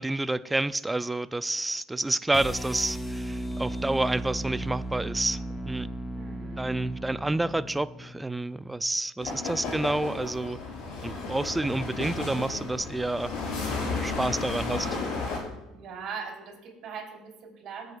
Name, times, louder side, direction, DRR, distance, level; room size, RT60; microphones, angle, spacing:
voice 1, 0.0-5.9 6.6-10.6 11.0-13.3 13.7-14.9, right 2 dB, 10° right, 15 dB, 0.3 m, -29 dB
sound 1, 2.3-8.5, right 1 dB, 10° left, 1.0 m, -36 dB
voice 2, 6.1-6.7 15.7-18.0, right 6 dB, 55° right, -1 dB, 3.5 m, -40 dB
sound 2, 9.2-15.4, left 3 dB, 65° left, 4.4 m, -33 dB
21.5 x 7.8 x 2.4 m, 1.0 s
supercardioid pair, 100°, 0 cm